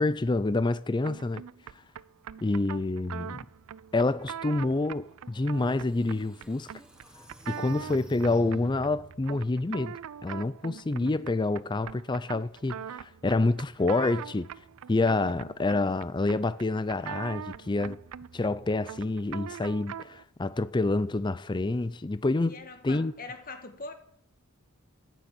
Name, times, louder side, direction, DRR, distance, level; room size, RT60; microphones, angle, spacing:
voice 1, 0.0-1.4 2.4-3.4 3.9-6.7 7.5-14.5 14.9-18.0 18.3-22.6 22.8-23.1, left 2 dB, 20° left, 0.4 m, -27 dB
sound 1, 1.0-20.2, right 8 dB, 75° right, 0.4 m, -42 dB
sound 2, 5.3-5.4 6.0-9.1, equal, 5° right, 1.5 m, -47 dB
voice 2, 22.4-23.9, left 3 dB, 40° left, 1.7 m, -42 dB
9.8 x 9.3 x 9.0 m
head